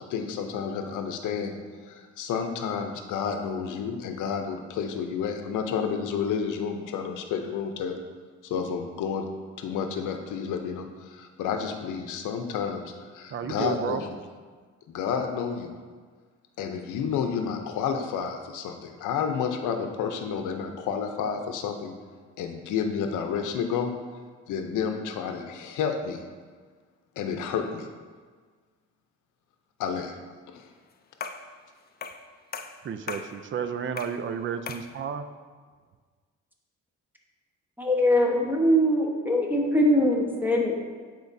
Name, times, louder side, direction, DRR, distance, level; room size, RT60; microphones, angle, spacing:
voice 1, 0.0-8.0 8.4-9.3 9.6-14.1 14.9-15.7 16.6-22.0 22.4-23.9 24.5-26.2 27.2-27.9 29.8-30.2 30.5-30.7, left 6 dB, 80° left, 5 dB, 0.7 m, -30 dB
voice 2, 13.3-14.0 32.8-35.3, right 7 dB, 40° right, 10 dB, 0.5 m, -32 dB
sound 1, 31.2-31.5 32.0-32.3 32.5-33.3 34.0-34.2 34.7-34.9, left 5 dB, 30° left, 0.4 m, -37 dB
voice 3, 37.8-40.7, equal, 5° right, 0 dB, 1.1 m, -22 dB
9.3 x 4.5 x 2.7 m, 1.5 s
cardioid pair, 90°, 30 cm